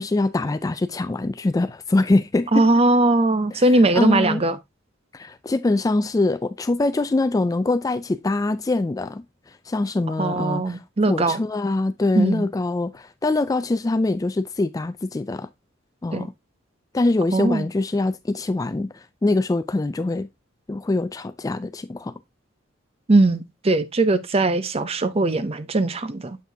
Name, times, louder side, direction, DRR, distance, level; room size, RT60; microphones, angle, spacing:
voice 1, 0.0-2.7 3.5-4.4 5.1-9.2 9.7-10.8 11.1-15.5 16.0-16.3 16.9-20.3 20.7-22.1, left 2 dB, 20° left, 0.3 m, -23 dB
voice 2, 2.5-4.6 10.2-11.4 12.2-12.5 16.1-16.3 17.3-17.7 23.1-26.4, right 2 dB, 30° right, 0.6 m, -20 dB
7.5 x 5.8 x 2.6 m
head